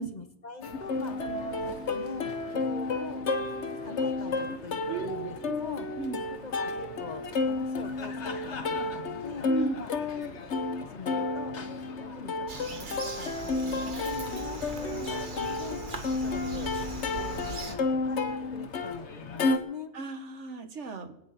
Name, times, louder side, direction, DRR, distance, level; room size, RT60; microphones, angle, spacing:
voice 1, 0.0-1.6 1.9-3.3 3.8-5.9 6.3-9.5 9.8-9.9 10.9-16.7 17.1-19.9, left 4 dB, 40° left, 10 dB, 1.0 m, -43 dB
Plucked string instrument, 0.6-19.6, left 3 dB, 70° left, 1.4 m, -32 dB
voice 2, 4.9-5.6 6.0-6.2 9.5-9.8 19.9-21.1, right 5 dB, 75° right, 8 dB, 1.7 m, -35 dB
Bird vocalization bird call bird song, 12.5-17.7, right 4 dB, 45° right, 1.4 m, -40 dB
21.0 x 9.0 x 5.9 m, 0.83 s
omnidirectional pair, 1.2 m